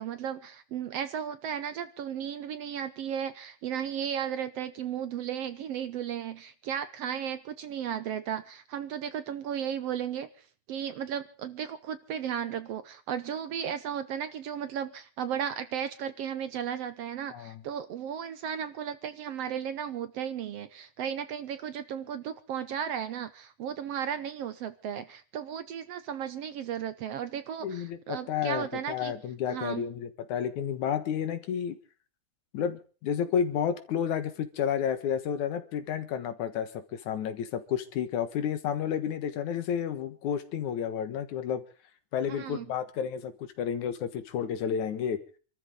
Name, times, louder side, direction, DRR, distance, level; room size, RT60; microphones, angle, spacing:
voice 1, 0.0-29.1 29.5-29.9 42.3-42.7, right 8 dB, 65° right, 1.7 m, -35 dB
voice 2, 17.3-17.6 27.6-31.8 32.5-41.6 42.1-45.2, left 8 dB, 75° left, 2.8 m, -31 dB
27.0 x 13.0 x 3.8 m
omnidirectional pair, 3.5 m